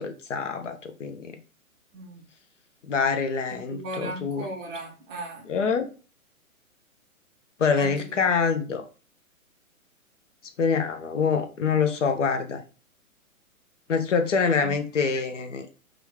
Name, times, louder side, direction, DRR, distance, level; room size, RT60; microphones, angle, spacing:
voice 1, 0.0-1.4 2.9-4.4 5.5-5.9 7.6-8.8 10.6-12.6 13.9-15.7, left 5 dB, 60° left, 0.6 m, -25 dB
voice 2, 3.5-5.5 7.8-8.4 14.5-14.7, right 2 dB, 15° right, 0.6 m, -37 dB
4.8 x 2.4 x 3.1 m
figure-of-eight pair, 125°, 43 cm